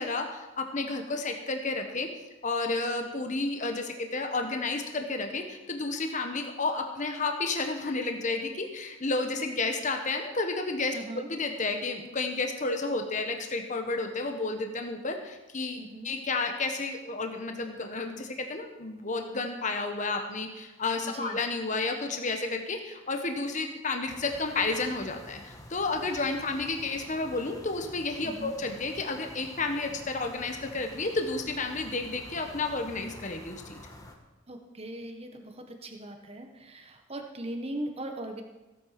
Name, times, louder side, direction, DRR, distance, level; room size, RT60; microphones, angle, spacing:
voice 1, 0.0-2.1 2.4-10.9 11.3-15.8 16.0-33.8, left 3 dB, 40° left, 5 dB, 1.2 m, -31 dB
voice 2, 10.9-11.3 15.8-16.1 21.0-21.4 28.2-28.5 34.5-38.4, right 1 dB, 30° right, 4 dB, 1.5 m, -39 dB
sound 1, 24.1-34.2, left 1 dB, 15° left, 1.4 m, -48 dB
16.0 x 8.8 x 5.9 m, 1.1 s
head